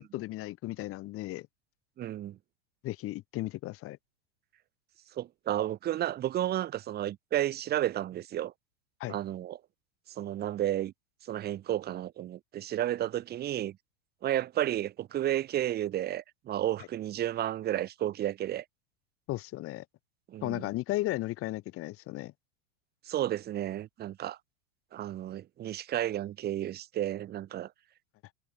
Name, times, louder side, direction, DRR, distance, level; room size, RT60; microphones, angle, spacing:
voice 1, 0.0-1.5 2.8-4.0 9.0-9.2 19.3-19.8 20.4-22.3, left 17 dB, 45° left, 2.2 m, -35 dB
voice 2, 2.0-2.4 5.2-8.5 9.1-9.6 10.1-10.9 11.2-13.8 14.2-18.6 20.3-20.7 23.1-24.4 24.9-27.7, right 12 dB, 30° right, 1.0 m, -32 dB
hypercardioid pair, 110°, 33 cm